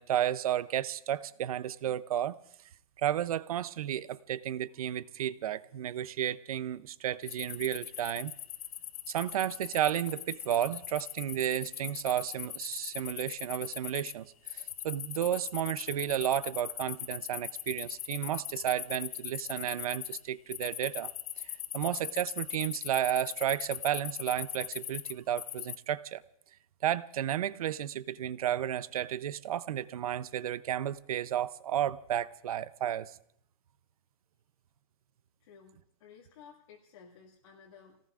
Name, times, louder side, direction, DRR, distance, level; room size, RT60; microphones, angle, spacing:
voice 1, 0.0-2.4 3.0-8.3 9.1-21.1 21.4-26.2 26.8-33.2, right 11 dB, 80° right, 18 dB, 0.6 m, -32 dB
sound 1, 7.2-14.1 14.5-20.2 20.5-25.8, left 11 dB, 80° left, 0.6 m, -40 dB
voice 2, 35.4-38.0, left 6 dB, 60° left, -3 dB, 2.2 m, -55 dB
30.0 x 18.5 x 2.5 m, 0.67 s
supercardioid pair, 170°, 18 cm